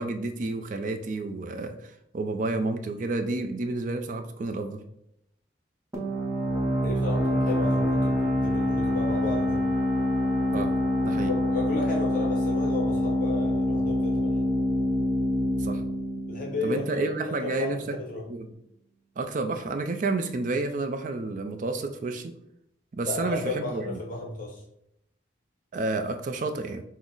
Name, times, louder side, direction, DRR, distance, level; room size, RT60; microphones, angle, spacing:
voice 1, 0.0-4.8 10.5-10.7 11.0-11.3 15.6-15.8 16.6-17.8 18.3-18.5 19.2-22.3 22.9-24.0 25.7-26.8, right 3 dB, 40° right, 6 dB, 0.4 m, -30 dB
sound 1, 5.9-17.3, left 1 dB, 15° right, 0.8 m, -26 dB
voice 2, 6.8-9.6 11.3-14.4 16.3-17.1 17.4-18.3 23.0-24.6, left 3 dB, 45° left, -1 dB, 0.8 m, -33 dB
5.9 x 2.0 x 3.8 m, 0.79 s
head